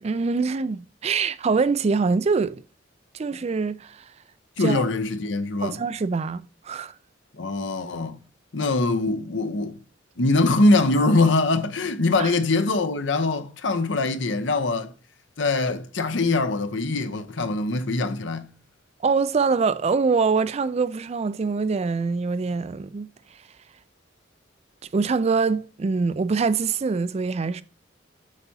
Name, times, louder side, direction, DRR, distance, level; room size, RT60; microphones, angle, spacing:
voice 1, 0.0-2.6 3.1-4.0 4.6-4.8 5.6-6.9 12.2-12.3 19.0-23.1 24.9-27.6, right 4 dB, 35° right, 0.3 m, -24 dB
voice 2, 4.6-5.8 7.4-8.2 8.5-9.8 10.2-14.9 15.4-18.5, left 2 dB, 70° left, 0.8 m, -23 dB
7.9 x 5.7 x 2.8 m
head